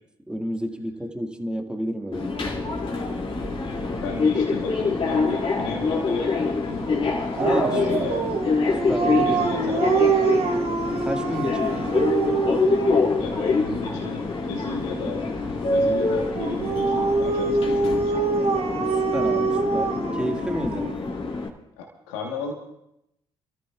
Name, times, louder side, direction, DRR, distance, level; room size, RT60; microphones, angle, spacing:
voice 1, 0.3-2.7 7.4-8.1 8.7-9.5 11.0-11.9 18.9-20.9, equal, 10° right, 3 dB, 2.0 m, -30 dB
Subway metro underground, 2.1-21.5, left 3 dB, 50° left, 2.7 m, -25 dB
voice 2, 4.0-6.8 7.7-8.2 9.2-10.2 13.2-15.3 15.7-18.2 21.8-22.5, left 4 dB, 85° left, 0 dB, 1.4 m, -34 dB
Dog, 7.4-13.2 16.4-20.9, right 4 dB, 55° right, 1.3 m, -25 dB
28.5 x 14.0 x 2.4 m, 0.82 s
hypercardioid pair, 50°, 12 cm